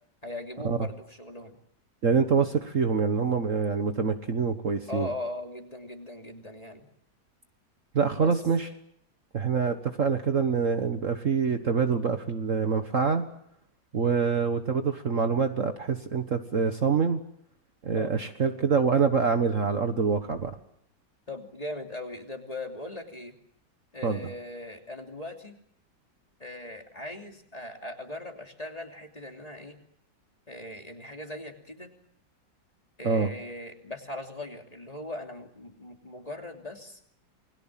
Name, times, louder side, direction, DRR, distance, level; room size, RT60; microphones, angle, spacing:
voice 1, 0.2-1.6 4.9-6.9 8.1-8.3 14.0-14.2 17.9-18.1 21.3-23.3 23.9-25.6 26.4-29.8 30.5-31.9 33.0-37.0, left 2 dB, 20° left, 3 dB, 3.0 m, -39 dB
voice 2, 2.0-5.1 7.9-8.7 9.3-13.2 13.9-17.2 17.8-20.6 24.0-24.2 33.0-33.3, right 5 dB, 45° right, 7 dB, 1.6 m, -25 dB
29.0 x 21.5 x 7.5 m, 0.71 s
omnidirectional pair, 1.9 m